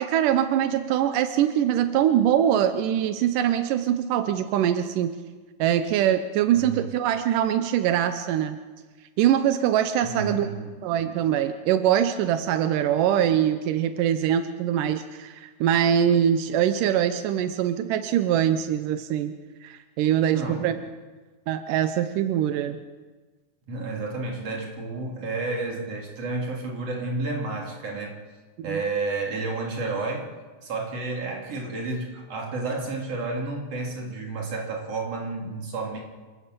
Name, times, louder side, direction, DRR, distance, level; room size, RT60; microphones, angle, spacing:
voice 1, 0.0-5.1 5.6-8.6 9.2-10.5 10.8-19.3 19.6-20.8 21.5-22.8 28.6-28.8, right 10 dB, 90° right, 9 dB, 2.4 m, -23 dB
voice 2, 6.6-6.9 10.0-10.8 20.2-20.7 23.7-28.2 28.6-30.3 30.6-36.0, right 3 dB, 50° right, 0 dB, 4.3 m, -31 dB
28.5 x 16.0 x 6.9 m, 1.4 s
omnidirectional pair, 3.7 m